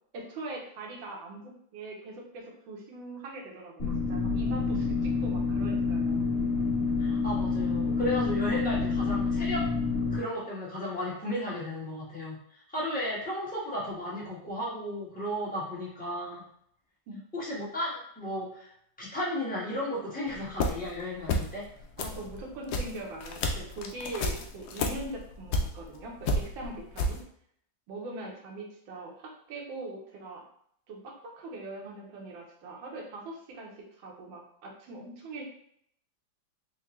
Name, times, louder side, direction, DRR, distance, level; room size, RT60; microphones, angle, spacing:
voice 1, 0.1-6.3 17.1-17.2 22.0-27.2 27.9-30.4 30.9-35.5, right 2 dB, 80° right, 0 dB, 1.5 m, -42 dB
sound 1, 3.8-10.2, left 4 dB, 50° left, 1.9 m, -28 dB
voice 2, 7.0-9.7 10.1-16.4 17.3-18.7 19.0-21.7, left 1 dB, 5° left, -7 dB, 0.7 m, -34 dB
sound 2, 20.3-21.0 21.2-21.7 21.9-26.0 26.2-27.2, left 2 dB, 75° left, 0.9 m, -31 dB
4.5 x 2.2 x 3.0 m, 0.68 s
omnidirectional pair, 2.1 m